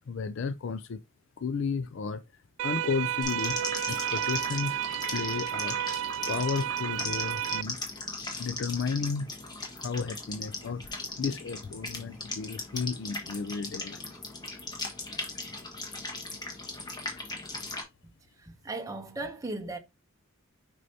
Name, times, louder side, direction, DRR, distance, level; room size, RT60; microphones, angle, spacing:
voice 1, 0.1-1.0 1.4-2.2 2.6-3.6 3.9-6.0 6.3-7.8 8.4-9.3 9.8-14.0, left 5 dB, 60° left, 0.4 m, -33 dB
sound 1, 2.6-7.6, right 12 dB, 65° right, 0.3 m, -32 dB
sound 2, 3.2-17.8, left 3 dB, 20° left, 1.5 m, -38 dB
voice 2, 18.4-19.8, right 2 dB, 15° right, 0.6 m, -37 dB
6.4 x 5.4 x 2.8 m
head